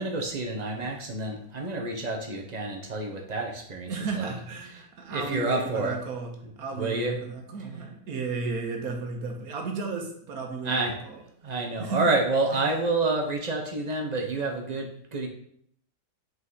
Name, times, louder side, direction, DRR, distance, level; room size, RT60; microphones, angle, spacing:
voice 1, 0.0-4.3 5.1-5.9 6.7-7.2 10.6-11.0 11.4-15.3, right 2 dB, 30° right, 1 dB, 0.9 m, -28 dB
voice 2, 3.9-6.3 6.6-11.2 11.8-12.1 12.5-12.6, right 4 dB, 70° right, 2 dB, 1.6 m, -33 dB
5.4 x 4.7 x 4.1 m, 0.66 s
omnidirectional pair, 1.6 m